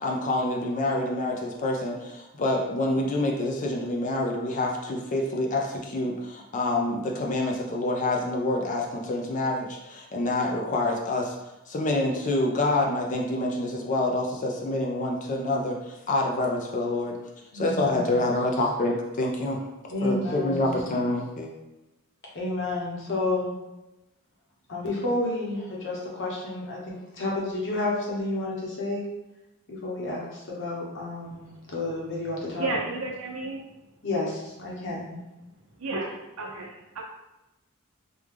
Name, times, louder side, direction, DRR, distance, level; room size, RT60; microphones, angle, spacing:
voice 1, 0.0-11.4 11.7-17.2 17.5-19.7 20.0-21.5, left 2 dB, 35° left, 1 dB, 0.4 m, -27 dB
voice 2, 17.5-18.2 19.9-20.8 22.3-23.5 24.7-29.0 29.7-32.7 34.0-35.2, left 2 dB, 55° left, -4 dB, 0.9 m, -30 dB
voice 3, 31.2-31.7 32.5-33.6 35.8-37.0, right 2 dB, 70° right, -2 dB, 0.8 m, -33 dB
3.6 x 2.2 x 3.2 m, 0.98 s
head